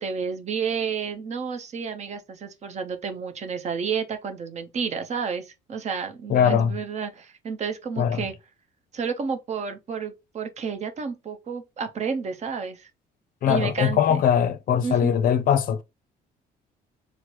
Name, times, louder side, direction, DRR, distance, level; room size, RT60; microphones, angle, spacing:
voice 1, 0.0-8.3 8.9-12.9 13.5-14.2 14.8-15.1, right 6 dB, 40° right, 0.8 m, -31 dB
voice 2, 6.3-6.7 8.0-8.2 13.4-15.8, left 8 dB, 55° left, 0.5 m, -21 dB
4.4 x 2.1 x 3.0 m
cardioid pair, 110°, 17 cm